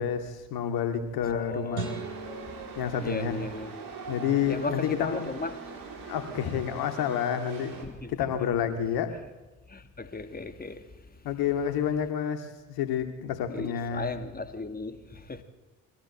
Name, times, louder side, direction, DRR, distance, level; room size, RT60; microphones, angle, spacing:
voice 1, 0.0-1.9 2.8-3.4 4.1-5.2 6.1-7.7 8.1-9.1 11.2-14.1, left 8 dB, 60° left, 2.6 m, -29 dB
voice 2, 1.2-2.1 3.0-3.9 4.5-5.6 7.8-8.5 9.7-10.8 13.5-15.4, left 3 dB, 20° left, 2.4 m, -36 dB
sound 1, 1.7-4.1, right 4 dB, 80° right, 2.3 m, -41 dB
Chatter / Subway metro underground, 1.8-7.8, right 4 dB, 50° right, 4.5 m, -42 dB
24.0 x 16.5 x 7.9 m
figure-of-eight pair, 45°, 42 cm